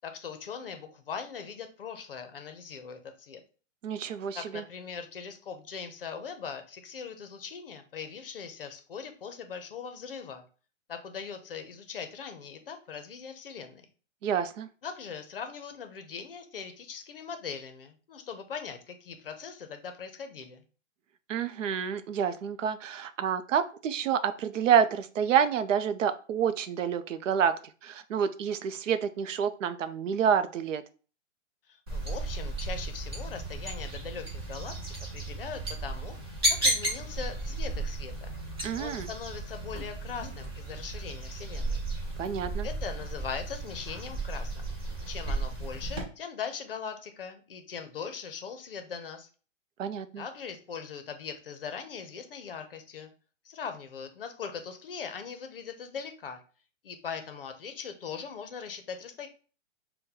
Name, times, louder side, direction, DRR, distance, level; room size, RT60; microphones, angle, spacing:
voice 1, 0.0-3.4 4.3-10.4 10.9-13.9 14.8-20.6 31.7-38.3 38.8-41.8 42.6-44.8 45.1-49.3 50.2-53.1 53.4-56.4 56.8-59.3, left 6 dB, 45° left, 7 dB, 0.6 m, -40 dB
voice 2, 3.8-4.6 14.2-14.7 21.3-27.5 27.8-30.8 38.6-39.1 42.2-42.7 49.8-50.2, right 8 dB, 80° right, 11 dB, 0.6 m, -28 dB
sound 1, 31.9-46.0, right 2 dB, 20° right, 0.6 m, -34 dB
3.7 x 2.2 x 4.1 m, 0.37 s
hypercardioid pair, 175°, 38 cm